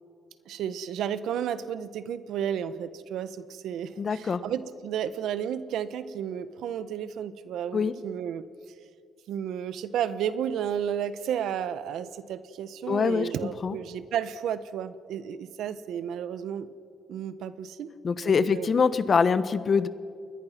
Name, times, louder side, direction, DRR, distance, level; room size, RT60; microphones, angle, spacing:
voice 1, 0.5-8.5 9.3-16.7 17.1-17.9 18.2-18.7, right 9 dB, 85° right, 13 dB, 1.1 m, -32 dB
voice 2, 4.0-4.4 7.7-7.9 12.9-13.3 13.6-13.8 18.0-19.9, left 5 dB, 45° left, 13 dB, 1.2 m, -24 dB
29.0 x 21.5 x 6.0 m, 2.3 s
cardioid pair, 95°, 0 cm